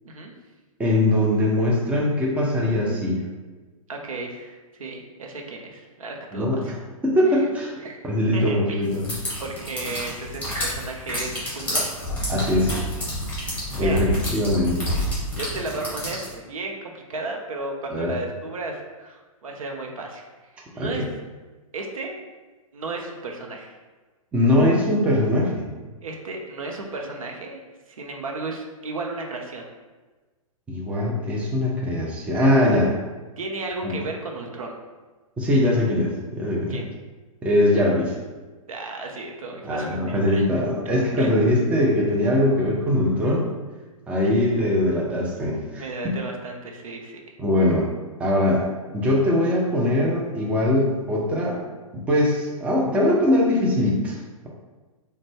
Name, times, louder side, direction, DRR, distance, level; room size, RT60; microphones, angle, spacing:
voice 1, 0.8-3.2 6.3-6.7 7.0-7.7 8.0-9.1 12.3-12.8 13.8-14.9 17.9-18.1 20.8-21.0 24.3-25.7 30.7-32.9 33.8-33.9 35.4-36.8 37.4-38.2 39.6-43.5 44.1-45.8 47.4-47.9 48.2-48.6 48.9-51.6 52.1-54.2, left 1 dB, 5° right, -3 dB, 0.5 m, -21 dB
voice 2, 3.9-6.7 7.3-7.4 7.8-8.0 8.3-8.9 9.4-11.9 13.3-14.2 15.4-20.3 20.7-21.0 21.7-22.1 22.7-23.7 26.0-27.6 27.9-29.7 33.4-34.7 36.7-36.8 38.7-40.5 41.2-41.6 44.2-44.3 45.8-47.4, right 3 dB, 70° right, 1 dB, 0.6 m, -34 dB
sound 1, 8.9-16.3, equal, 10° left, 1.4 m, -28 dB
3.7 x 2.2 x 3.4 m, 1.3 s
figure-of-eight pair, 120°, 19 cm